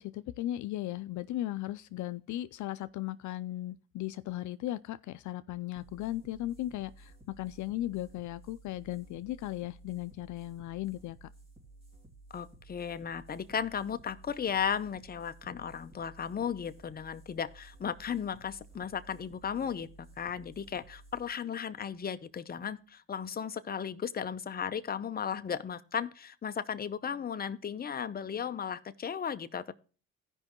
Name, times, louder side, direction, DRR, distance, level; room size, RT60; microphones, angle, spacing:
voice 1, 0.0-11.3, left 15 dB, 75° left, 0.5 m, -37 dB
sound 1, 5.7-22.8, right 2 dB, 20° right, 2.5 m, -56 dB
voice 2, 12.3-29.7, left 7 dB, 30° left, 0.7 m, -35 dB
16.0 x 5.3 x 3.0 m
cardioid pair, 90°, 30 cm